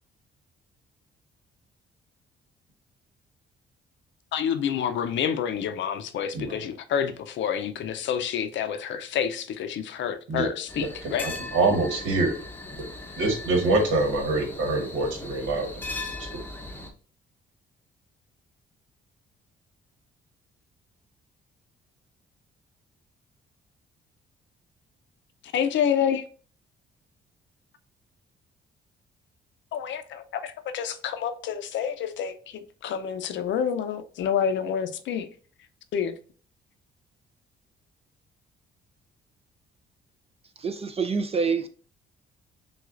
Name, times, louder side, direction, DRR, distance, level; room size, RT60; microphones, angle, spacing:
voice 1, 4.3-11.3 25.5-26.2 29.7-35.3 35.9-36.1, left 8 dB, 70° left, 0.5 m, -28 dB
voice 2, 10.3-12.4 12.8-12.9 13.2-15.7, right 2 dB, 85° right, 1.3 m, -25 dB
sound 1, 10.7-16.9, left 2 dB, 10° left, 0.7 m, -38 dB
voice 3, 40.6-41.7, right 5 dB, 30° right, 0.4 m, -26 dB
6.2 x 2.3 x 2.5 m
cardioid pair, 90°, 20 cm